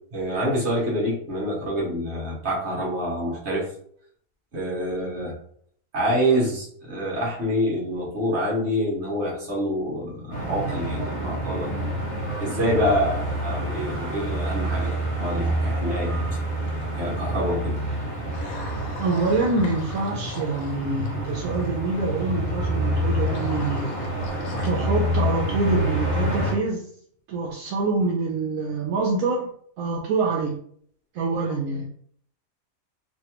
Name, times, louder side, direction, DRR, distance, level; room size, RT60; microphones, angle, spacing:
voice 1, 0.1-3.6 4.5-5.3 5.9-11.7 12.4-16.4 17.0-17.8, equal, 55° right, -5 dB, 1.4 m, -26 dB
sound 1, 10.3-26.6, right 1 dB, 30° left, 0.8 m, -27 dB
sound 2, 16.7-17.1 18.3-21.7 22.9-24.7, left 2 dB, 90° left, 1.1 m, -40 dB
voice 2, 19.0-23.9 24.6-26.9 27.3-29.5 29.8-30.6 31.1-31.8, right 3 dB, 80° right, -2 dB, 1.0 m, -25 dB
3.3 x 2.3 x 2.8 m, 0.62 s
omnidirectional pair, 1.5 m